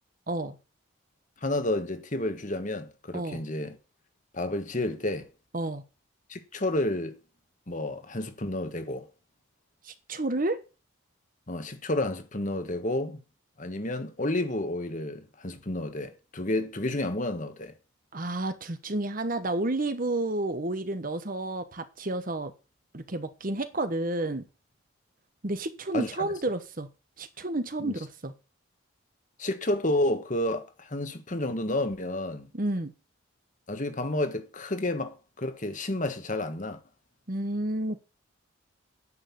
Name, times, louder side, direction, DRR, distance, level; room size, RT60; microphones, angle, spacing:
voice 1, 1.4-3.8 4.3-5.3 6.3-7.2 7.7-9.1 11.5-13.2 13.6-17.7 25.9-26.3 27.8-27.9 29.4-32.5 33.7-36.8, left 1 dB, 35° left, 1.4 m, -30 dB
voice 2, 9.8-10.6 18.1-22.5 22.9-24.5 25.4-26.9 27.2-28.3 32.5-32.9 37.3-38.0, right 2 dB, 40° right, 1.1 m, -30 dB
9.7 x 6.6 x 8.5 m
head